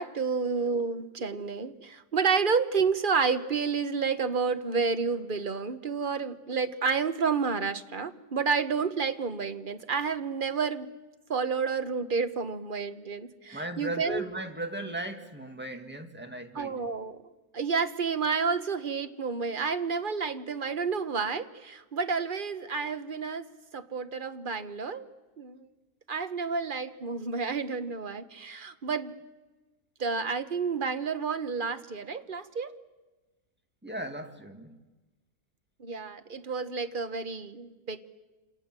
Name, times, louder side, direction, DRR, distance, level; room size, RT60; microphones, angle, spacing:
voice 1, 0.0-10.9 11.3-14.2 16.5-17.2 17.5-25.1 25.4-25.7 26.1-29.2 30.0-32.7 35.8-38.1, right 5 dB, 40° right, 9 dB, 1.3 m, -30 dB
voice 2, 13.5-16.7 33.8-34.8, right 1 dB, 5° right, 4 dB, 2.2 m, -37 dB
28.0 x 27.5 x 7.6 m, 1.2 s
omnidirectional pair, 1.5 m